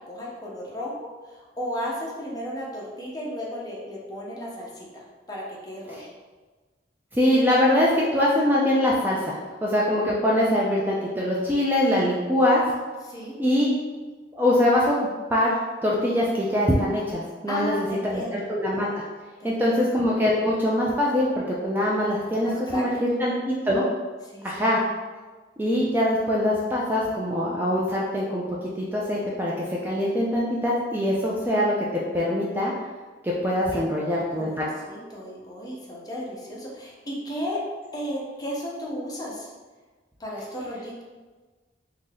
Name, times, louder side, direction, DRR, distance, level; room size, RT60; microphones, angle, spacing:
voice 1, 0.1-4.9 5.3-6.0 13.0-13.3 17.5-18.4 19.4-19.8 22.4-22.8 24.3-24.7 34.0-34.6 34.9-37.6 37.9-39.5 40.2-41.0, equal, 20° left, -4 dB, 0.7 m, -34 dB
voice 2, 7.1-9.4 9.6-12.6 13.4-13.7 14.3-15.5 15.8-18.9 19.4-23.8 24.4-24.8 25.6-29.5 29.8-31.7 32.1-32.7 33.2-34.6, left 1 dB, 10° right, -5 dB, 0.3 m, -23 dB
2.8 x 2.6 x 3.9 m, 1.3 s
head